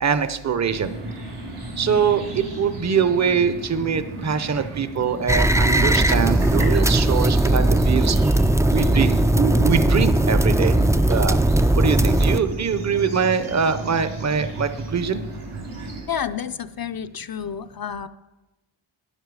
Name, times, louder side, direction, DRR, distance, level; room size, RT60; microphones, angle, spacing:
voice 1, 0.0-0.9 1.8-8.2 8.7-10.7 11.1-11.4 11.8-15.2, right 6 dB, 35° right, 12 dB, 0.7 m, -23 dB
sound 1, 0.7-16.0, right 2 dB, 90° right, 3.7 m, -34 dB
sound 2, 5.3-12.4, right 1 dB, 5° right, 0.3 m, -18 dB
voice 2, 16.1-18.1, left 8 dB, 45° left, 11 dB, 0.5 m, -30 dB
12.0 x 9.8 x 4.8 m, 1.0 s
wide cardioid pair, 100°, 50 cm